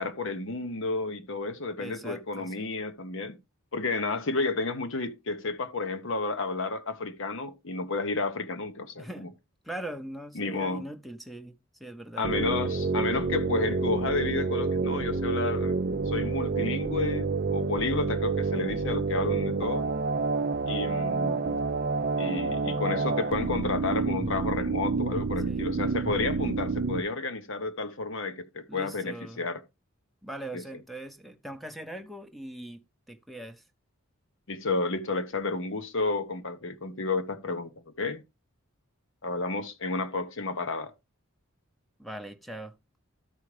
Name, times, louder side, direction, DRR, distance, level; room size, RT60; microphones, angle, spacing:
voice 1, 0.0-3.4 3.7-9.3 10.3-10.9 12.2-15.8 16.1-19.9 20.7-21.6 22.2-29.6 30.5-30.6 34.5-38.2 39.2-40.9, left 3 dB, 55° left, 0.9 m, -31 dB
voice 2, 1.8-2.7 9.0-9.3 9.6-11.5 11.8-12.3 25.5-25.7 28.7-29.4 30.2-32.8 33.1-33.6 42.0-42.7, right 1 dB, ahead, 0.8 m, -41 dB
sound 1, 12.2-27.0, right 4 dB, 40° right, 0.5 m, -28 dB
13.0 x 4.8 x 3.2 m
head